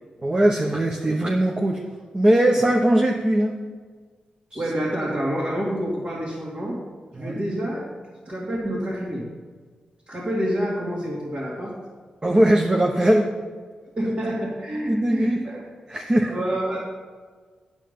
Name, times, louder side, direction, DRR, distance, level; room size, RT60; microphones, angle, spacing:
voice 1, 0.2-1.8 2.1-3.6 4.5-4.6 7.2-7.4 12.2-13.3 14.9-15.4 15.9-16.3, right 1 dB, 30° right, 1 dB, 0.9 m, -20 dB
voice 2, 4.5-6.8 7.1-7.9 8.2-9.3 10.1-11.7 14.0-15.7 16.3-16.8, equal, 50° right, -6 dB, 2.4 m, -28 dB
8.3 x 7.6 x 5.4 m, 1.5 s
cardioid pair, 50°, 3 cm